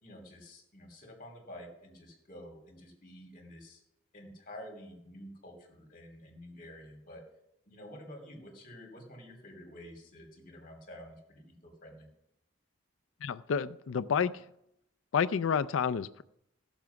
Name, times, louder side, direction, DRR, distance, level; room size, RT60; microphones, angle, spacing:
voice 1, 0.0-3.8 4.1-7.2 7.7-12.1, equal, 45° left, 1 dB, 3.1 m, -49 dB
voice 2, 13.2-14.5 15.1-16.2, left 6 dB, 90° left, 14 dB, 0.4 m, -30 dB
15.0 x 7.2 x 5.8 m, 0.81 s
head